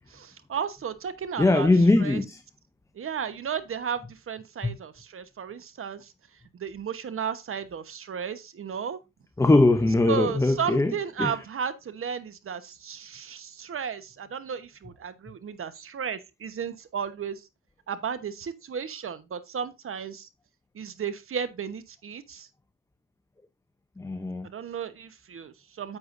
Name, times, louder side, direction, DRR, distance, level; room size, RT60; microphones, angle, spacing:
voice 1, 0.1-1.7 2.0-2.2 2.9-6.1 6.5-9.0 10.1-17.5 17.9-20.3 20.7-22.5 24.5-26.0, right 7 dB, 45° right, 1.1 m, -34 dB
voice 2, 1.4-2.4 4.6-4.8 9.4-10.9 11.2-11.3 24.0-24.5, left 2 dB, 10° left, 0.6 m, -21 dB
9.8 x 7.7 x 2.6 m
cardioid pair, 90°, 30 cm